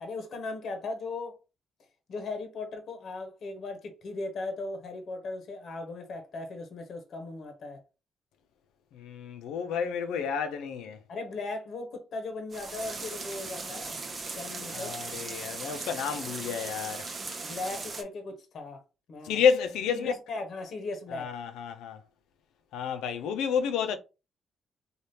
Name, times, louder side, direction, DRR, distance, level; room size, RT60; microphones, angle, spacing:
voice 1, 0.0-1.3 2.1-7.8 11.1-14.0 14.3-15.2 17.4-18.8 19.1-19.4 19.9-21.3, left 3 dB, 65° left, 0.8 m, -38 dB
voice 2, 8.9-11.0 14.7-17.1 19.2-20.1 21.1-22.0 22.7-24.0, left 7 dB, 90° left, 0.5 m, -30 dB
sound 1, 12.5-18.0, right 3 dB, 50° right, 0.7 m, -38 dB
3.3 x 2.3 x 2.7 m
cardioid pair, 70°, 0 cm